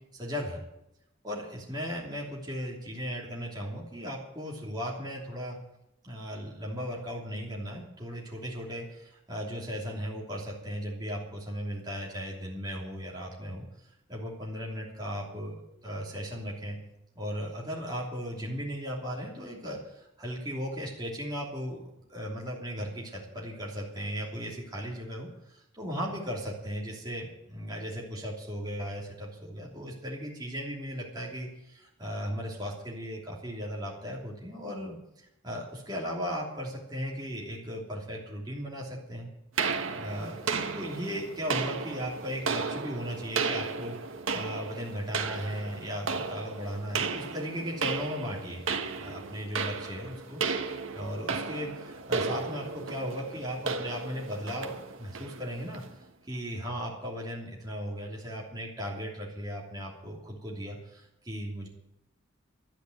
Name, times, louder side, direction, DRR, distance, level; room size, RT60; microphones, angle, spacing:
voice 1, 0.1-0.6 1.2-5.6 6.0-13.6 14.1-15.5 15.8-16.8 17.1-21.8 22.1-39.3 39.9-48.6 49.0-50.4 50.9-55.8 56.2-61.7, equal, 20° right, -4 dB, 3.0 m, -37 dB
sound 1, 39.6-55.9, right 4 dB, 80° right, 1.3 m, -34 dB
12.0 x 9.9 x 9.3 m, 0.84 s
head